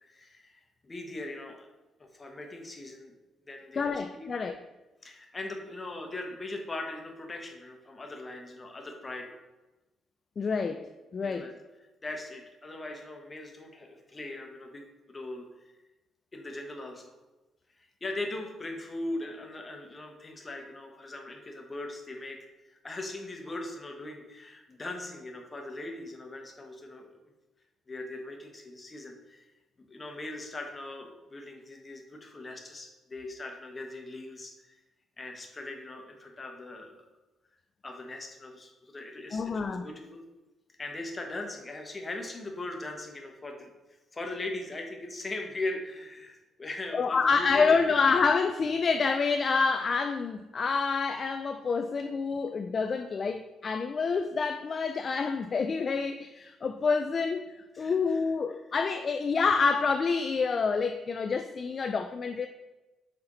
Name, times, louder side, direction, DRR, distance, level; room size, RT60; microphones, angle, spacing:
voice 1, 0.0-1.7 2.0-3.1 3.5-4.3 5.0-9.3 11.2-11.5 12.0-15.8 16.3-17.1 17.7-27.2 27.9-29.5 29.9-34.8 35.2-37.1 37.8-40.2 40.8-43.7 44.1-47.9 57.7-58.2, left 2 dB, 25° left, 3 dB, 1.1 m, -40 dB
voice 2, 3.8-4.5 10.4-10.9 11.1-11.5 39.3-39.9 46.9-57.4 57.8-62.5, left 5 dB, 45° left, 7 dB, 0.3 m, -27 dB
5.7 x 4.3 x 3.8 m, 1.1 s
cardioid pair, 90°, 0 cm